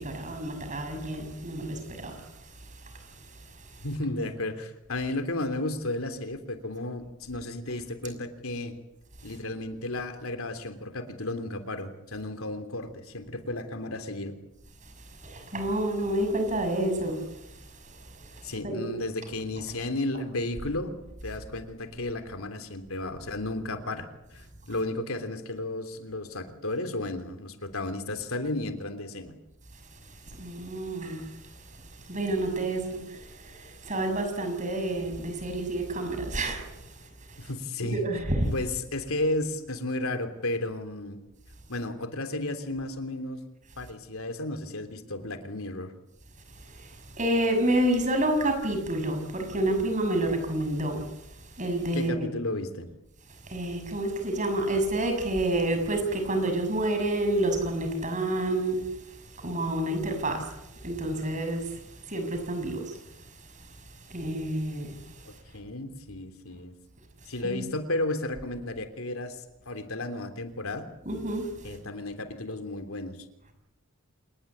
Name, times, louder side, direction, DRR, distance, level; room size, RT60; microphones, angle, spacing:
voice 1, 0.0-2.2 15.2-17.2 18.2-18.9 30.4-31.3 32.1-36.7 37.8-38.4 46.8-51.0 51.6-52.1 53.5-58.8 59.4-60.5 60.8-61.8 62.1-62.9 64.1-65.0 67.4-67.6 71.1-71.5, right 1 dB, 35° right, 6.5 m, -29 dB
voice 2, 3.8-8.7 9.2-14.3 18.4-20.9 21.2-29.3 37.4-38.0 38.4-41.2 41.7-43.4 43.8-45.9 51.9-52.9 65.2-66.7 67.2-70.8 71.6-73.2, left 2 dB, 90° left, 3.2 m, -33 dB
28.0 x 20.0 x 8.7 m
head